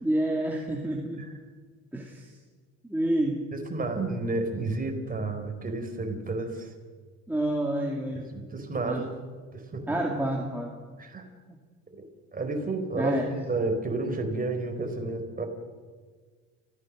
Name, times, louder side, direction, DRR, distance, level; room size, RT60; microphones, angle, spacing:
voice 1, 0.0-1.3 1.9-2.3 2.9-3.5 7.3-8.3 8.8-9.1 9.9-10.7 11.5-11.6 12.9-13.3, right 1 dB, 5° right, -1 dB, 2.5 m, -29 dB
voice 2, 3.5-6.7 8.3-9.1 9.5-9.8 11.0-11.3 12.3-15.5, right 2 dB, 25° right, 4 dB, 4.5 m, -31 dB
30.0 x 15.0 x 6.4 m, 1.5 s
supercardioid pair, 90°, 35 cm